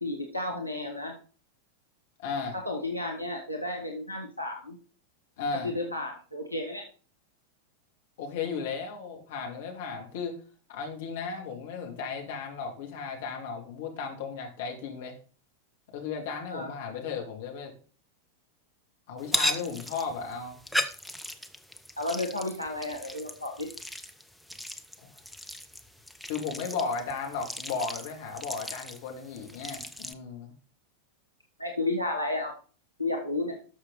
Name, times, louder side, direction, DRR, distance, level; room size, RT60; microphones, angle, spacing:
voice 1, 0.0-1.1 2.6-4.8 5.6-6.8 16.5-16.7 22.0-23.7 31.6-32.5 33.0-33.5, left 2 dB, 90° left, 1 dB, 1.5 m, -32 dB
voice 2, 2.2-2.6 5.4-5.7 8.2-10.4 10.7-15.2 15.9-17.7 19.1-20.6 25.0-25.1 26.3-30.5, left 5 dB, 55° left, 2 dB, 2.8 m, -35 dB
sound 1, 19.2-30.1, equal, ahead, 0.8 m, -37 dB
12.5 x 6.4 x 4.1 m, 0.38 s
figure-of-eight pair, 90°, 0 cm